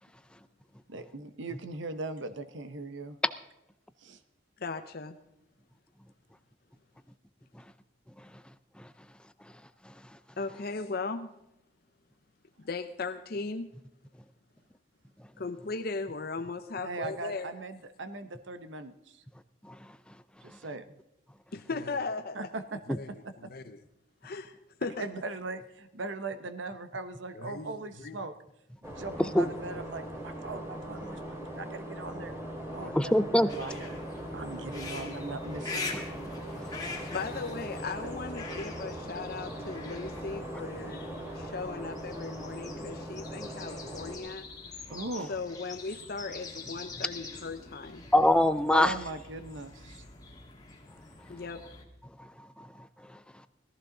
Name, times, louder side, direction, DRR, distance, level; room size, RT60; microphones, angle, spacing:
voice 1, 0.9-3.2 4.0-4.2 12.6-12.7 16.8-19.3 20.4-21.0 22.3-22.6 23.1-23.5 24.8-28.3 28.9-32.4 32.7-34.0 34.3-35.9 37.9-38.7 44.9-45.4 48.7-50.1, right 3 dB, 80° right, 11 dB, 0.9 m, -40 dB
voice 2, 4.6-5.2 10.4-11.3 12.6-13.7 15.4-17.5 21.5-22.3 23.5-23.8 24.2-24.5 24.8-25.1 27.5-27.7 28.0-28.2 29.3-29.4 37.1-44.5 45.3-48.0 51.3-51.6, left 4 dB, 55° left, 8 dB, 0.7 m, -37 dB
sound 1, 28.8-44.2, right 1 dB, 15° right, 2.5 m, -40 dB
voice 3, 33.0-33.5 36.6-36.8 43.4-43.5 48.1-48.9 52.6-53.2, left 1 dB, 5° left, 13 dB, 0.4 m, -24 dB
sound 2, 33.5-51.8, left 3 dB, 20° left, 2.0 m, -44 dB
18.0 x 14.5 x 3.8 m, 0.86 s
head